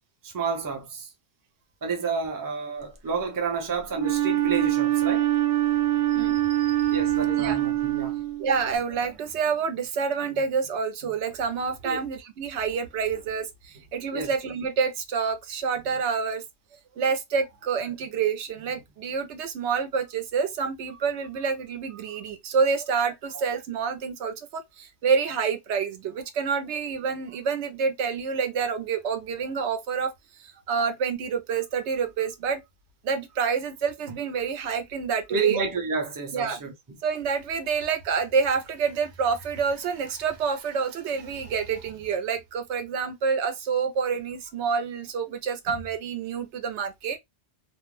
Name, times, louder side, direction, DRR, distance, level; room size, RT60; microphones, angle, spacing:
voice 1, 0.2-1.1 1.8-5.3 6.9-8.2 11.8-12.0 14.1-14.3 35.3-37.0, right 4 dB, 25° right, 0.5 m, -30 dB
Wind instrument woodwind instrument, 3.9-8.7, right 13 dB, 60° right, 0.7 m, -24 dB
voice 2, 6.1-7.0 7.4-7.6 8.4-16.4 17.0-30.1 30.4-32.6 33.0-35.6 36.3-36.6 37.0-47.2, right 6 dB, 85° right, 0.9 m, -28 dB
2.5 x 2.0 x 3.1 m
omnidirectional pair, 1.1 m